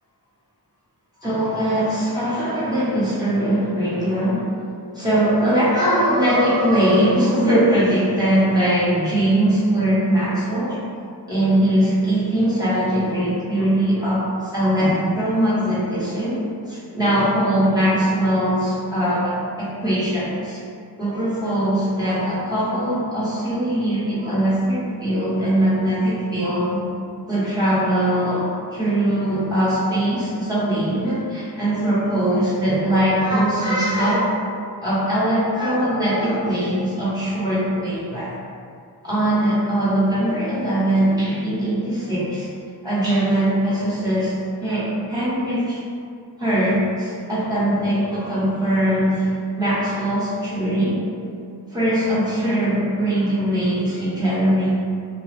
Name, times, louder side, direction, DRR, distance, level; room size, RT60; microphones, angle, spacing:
voice 1, 1.2-4.4 4.9-10.8 11.3-20.6 21.0-26.8 27.3-34.4 34.8-38.3 39.0-42.5 42.8-45.8 46.4-51.0 51.7-54.7, right 1 dB, 10° right, -11 dB, 0.9 m, -21 dB
2.9 x 2.2 x 3.1 m, 2.4 s
wide cardioid pair, 170°, 40 cm